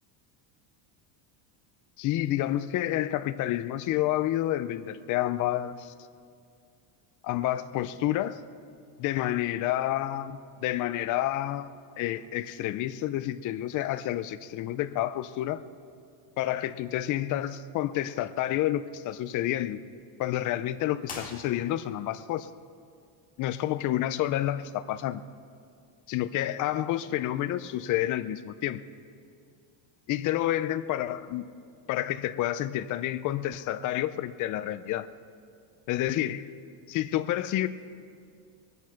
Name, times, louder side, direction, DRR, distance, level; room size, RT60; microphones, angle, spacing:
voice 1, 2.0-5.9 7.2-8.4 9.0-15.6 16.4-19.8 20.2-22.5 23.4-25.2 26.1-28.9 30.1-31.5 31.9-35.1 35.9-36.5 36.9-37.7, left 13 dB, 40° left, 12 dB, 0.5 m, -29 dB
sound 1, 21.0-22.1, left 3 dB, 15° left, 2.0 m, -43 dB
21.5 x 9.3 x 5.8 m, 2.3 s
cardioid pair, 170°, 48 cm